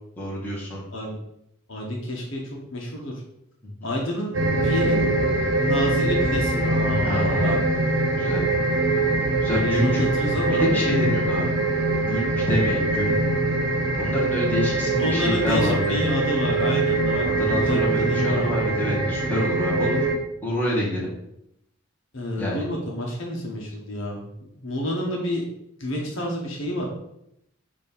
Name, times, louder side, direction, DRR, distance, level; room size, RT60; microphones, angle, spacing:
voice 1, 0.2-0.8 7.0-7.6 8.1-8.4 9.4-10.0 10.5-11.5 12.1-13.2 14.0-16.0 17.3-20.0 20.4-21.1 22.4-22.7, equal, 10° left, -8 dB, 2.0 m, -27 dB
voice 2, 1.7-3.1 3.8-5.0 5.6-7.6 9.4-10.7 15.0-17.3 17.6-18.7 22.1-24.2 24.6-25.4 25.8-26.8, left 1 dB, 60° left, -2 dB, 1.4 m, -29 dB
sound 1, 4.3-20.2, right 2 dB, 60° right, 1.2 m, -23 dB
7.4 x 3.0 x 5.4 m, 0.79 s
head